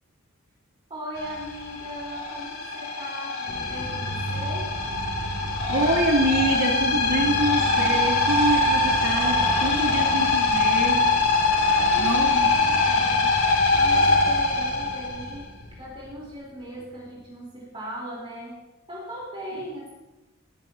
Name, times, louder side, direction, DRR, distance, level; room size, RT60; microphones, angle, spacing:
voice 1, 0.9-4.8 11.6-18.6 18.9-19.9, equal, 25° right, -6 dB, 4.0 m, -38 dB
sound 1, 1.2-15.7, left 3 dB, 90° left, 2.8 m, -23 dB
voice 2, 5.7-11.1 12.0-12.5, right 1 dB, 70° right, -4 dB, 3.2 m, -26 dB
19.0 x 11.5 x 2.9 m, 1.0 s
head